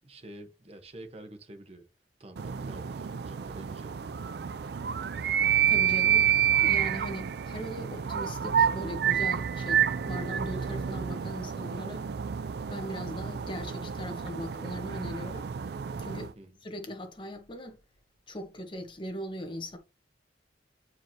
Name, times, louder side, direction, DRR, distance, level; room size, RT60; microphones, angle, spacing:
voice 1, 0.0-1.9 2.2-4.2 16.3-16.6, right 1 dB, 35° right, 1.2 m, -48 dB
sound 1, 2.4-16.3, right 8 dB, 60° right, 0.4 m, -29 dB
voice 2, 5.7-6.3 6.6-12.0 12.7-15.5 16.0-16.3 16.6-17.8 18.3-19.8, equal, 30° left, 1.3 m, -39 dB
7.9 x 4.8 x 2.8 m
head